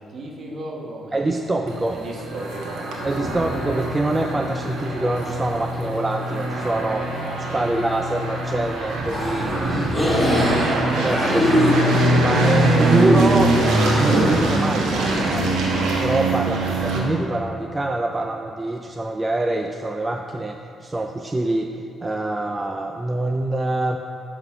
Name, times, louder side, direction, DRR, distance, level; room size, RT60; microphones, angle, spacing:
voice 1, 0.0-3.5 7.2-7.6 16.0-16.4, right 2 dB, 50° right, -1 dB, 1.4 m, -37 dB
voice 2, 1.1-2.0 3.0-7.2 7.5-9.8 11.0-11.8 12.2-13.6 14.0-15.5 16.0-21.7 22.0-24.0, right 2 dB, 20° right, 4 dB, 0.4 m, -25 dB
sound 1, 1.7-17.0, right 2 dB, 90° right, 1.3 m, -23 dB
Trumpet, 2.1-9.0, left 2 dB, 65° left, 1.7 m, -41 dB
sound 2, 9.1-15.8, left 1 dB, 5° left, 2.2 m, -24 dB
10.5 x 3.8 x 5.8 m, 2.5 s
cardioid pair, 90°, 0 cm